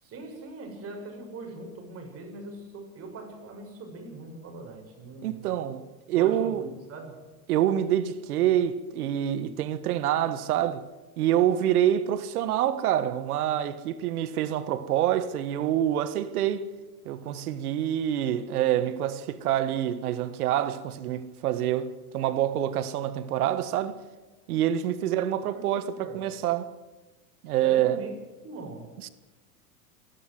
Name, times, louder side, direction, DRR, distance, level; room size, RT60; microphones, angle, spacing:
voice 1, 0.0-5.5 6.1-7.2 25.4-26.4 27.6-28.1 28.4-28.9, right 2 dB, 30° right, 6.4 m, -41 dB
voice 2, 5.2-6.6 7.5-10.9 11.2-16.7 17.0-24.0 24.5-26.7 27.4-28.0 29.0-29.1, right 11 dB, 80° right, 1.6 m, -26 dB
28.5 x 12.5 x 7.9 m
supercardioid pair, 120°, 44 cm